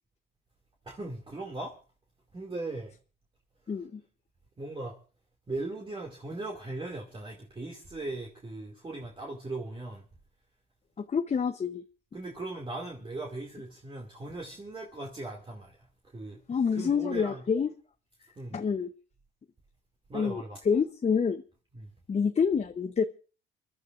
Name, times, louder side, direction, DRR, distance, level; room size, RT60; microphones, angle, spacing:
voice 1, 0.8-1.8 2.3-2.9 3.7-3.8 4.6-5.0 5.5-10.0 12.1-16.4 16.7-17.4 18.4-18.6 20.1-20.6 21.7-21.9, right 2 dB, 25° right, 2.4 m, -38 dB
voice 2, 3.7-4.0 11.1-11.8 16.5-17.7 18.5-18.9 20.1-21.4 22.1-23.0, left 6 dB, 35° left, 0.8 m, -27 dB
29.0 x 12.0 x 2.5 m
cardioid pair, 90°, 20 cm